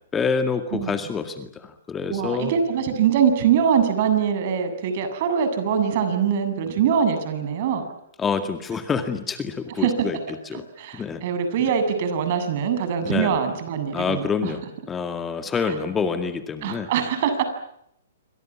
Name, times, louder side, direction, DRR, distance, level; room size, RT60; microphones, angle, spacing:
voice 1, 0.0-2.5 8.2-10.2 10.5-10.6 10.9-11.2 13.0-13.4 13.9-16.9, left 5 dB, 15° left, 8 dB, 2.0 m, -27 dB
voice 2, 2.1-7.8 9.8-9.9 10.8-14.5 15.6-15.7 16.6-17.4, right 7 dB, 50° right, 9 dB, 7.6 m, -23 dB
27.5 x 25.5 x 7.3 m, 0.76 s
hypercardioid pair, 145°, 0 cm